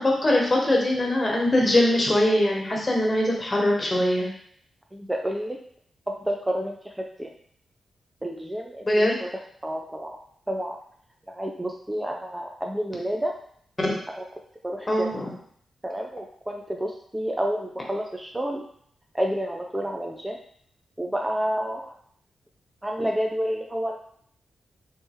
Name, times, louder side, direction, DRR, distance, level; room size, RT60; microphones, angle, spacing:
voice 1, 0.0-4.3 8.8-9.2 14.9-15.3 23.0-23.1, left 1 dB, 35° left, -2 dB, 1.3 m, -22 dB
voice 2, 4.9-5.6 6.2-6.8 7.2-7.3 8.2-9.1 9.6-10.2 10.5-10.8 11.4-13.3 14.6-15.1 15.8-18.6 19.1-20.4 21.0-21.9 22.8-24.0, equal, 15° right, 1 dB, 0.5 m, -29 dB
3.2 x 3.2 x 3.0 m, 0.62 s
supercardioid pair, 50°, 0 cm